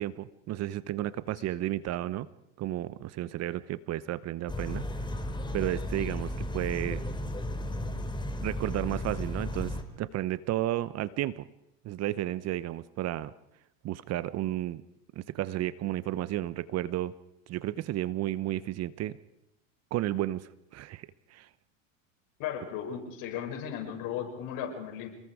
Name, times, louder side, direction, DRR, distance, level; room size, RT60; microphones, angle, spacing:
voice 1, 0.0-2.3 2.6-4.8 5.5-7.0 8.4-11.5 11.8-13.3 13.8-14.8 15.2-17.1 17.5-19.2 19.9-21.5, right 14 dB, 40° right, 17 dB, 0.9 m, -32 dB
sound 1, 4.5-9.8, left 1 dB, 10° left, 2.9 m, -34 dB
voice 2, 22.4-25.1, left 9 dB, 55° left, 3 dB, 6.8 m, -36 dB
29.0 x 21.0 x 4.9 m, 0.82 s
hypercardioid pair, 100°, 39 cm